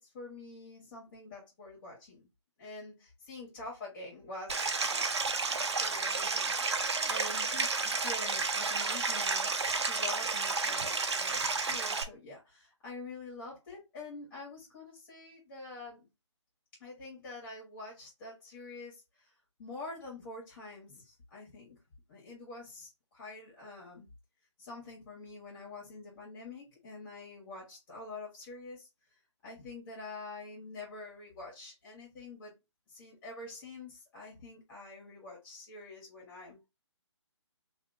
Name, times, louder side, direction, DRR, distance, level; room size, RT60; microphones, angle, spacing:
voice 1, 0.0-2.3 2.6-4.6 4.9-5.1 5.6-16.1 16.8-19.3 19.6-21.8 22.1-24.1 24.6-32.5 32.9-36.7, left 3 dB, 35° left, 1.8 m, -46 dB
Stream, 4.5-12.0, right 4 dB, 65° right, 0.8 m, -31 dB
3.7 x 3.0 x 2.6 m
figure-of-eight pair, 140°, 15 cm